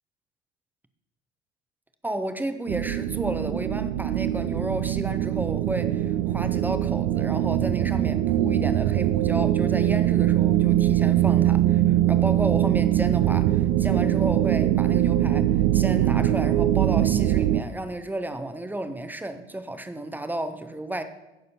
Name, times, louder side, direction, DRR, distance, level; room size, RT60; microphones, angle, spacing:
voice 1, 2.0-21.0, right 1 dB, 5° right, 0.7 m, -32 dB
sound 1, 2.7-17.6, right 12 dB, 45° right, 0.5 m, -22 dB
15.5 x 6.5 x 2.9 m
figure-of-eight pair, 65°, 34 cm